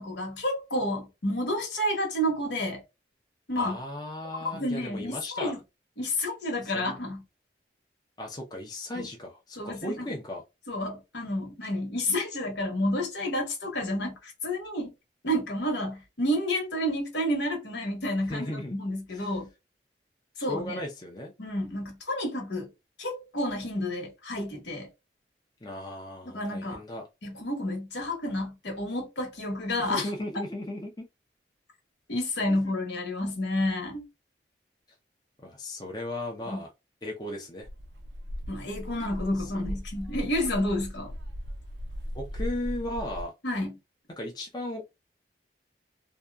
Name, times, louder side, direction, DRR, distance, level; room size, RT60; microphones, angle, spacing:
voice 1, 0.0-2.8 3.5-3.8 4.5-5.6 6.0-7.2 8.9-9.1 9.6-9.9 10.7-14.9 15.2-19.5 20.4-20.8 21.4-22.7 23.0-24.9 26.3-26.8 27.2-30.0 32.1-34.0 36.5-36.6 38.5-41.1 43.4-43.7, left 1 dB, 85° left, 1.1 m, -30 dB
voice 2, 3.6-5.5 6.6-7.0 8.2-10.4 18.3-18.8 19.1-19.3 20.4-21.3 25.6-27.1 29.8-30.9 32.5-32.7 35.4-36.7 37.0-37.7 39.4-39.6 42.1-43.3 44.1-44.9, left 1 dB, 25° left, 0.5 m, -36 dB
sound 1, 37.6-43.2, equal, 85° right, 0.5 m, -37 dB
2.7 x 2.2 x 2.2 m
head